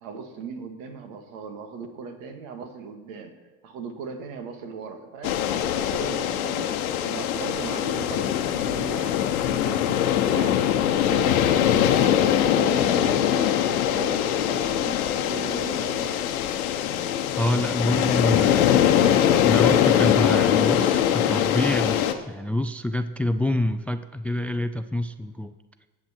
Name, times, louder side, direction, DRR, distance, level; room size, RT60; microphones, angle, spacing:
voice 1, 0.0-3.4 3.6-6.8 7.0-10.6 11.0-16.3, right 5 dB, 70° right, 6 dB, 2.0 m, -38 dB
sound 1, 5.2-22.1, left 10 dB, 85° left, 1.0 m, -22 dB
voice 2, 17.4-19.0 19.4-25.5, left 1 dB, 5° left, 11 dB, 0.4 m, -27 dB
20.0 x 7.7 x 4.4 m, 1.2 s
hypercardioid pair, 85°, 41 cm